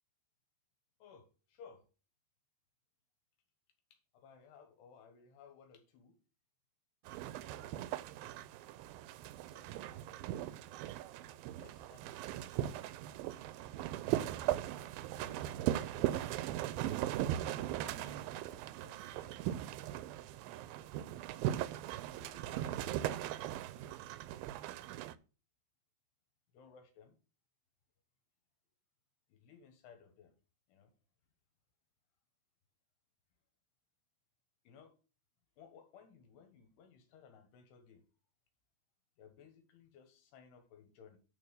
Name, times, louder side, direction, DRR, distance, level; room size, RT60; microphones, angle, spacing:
voice 1, 1.0-1.9 3.9-6.2 9.4-10.5 11.6-12.4 15.1-16.5 17.4-19.4 22.2-23.7 26.5-27.2 29.3-30.3 30.7-30.9 34.7-35.0 35.6-38.0 39.2-41.2, left 6 dB, 85° left, 5 dB, 3.5 m, -60 dB
sound 1, 7.1-25.1, right 13 dB, 80° right, 2.2 m, -39 dB
11.0 x 4.0 x 6.9 m, 0.35 s
omnidirectional pair, 4.7 m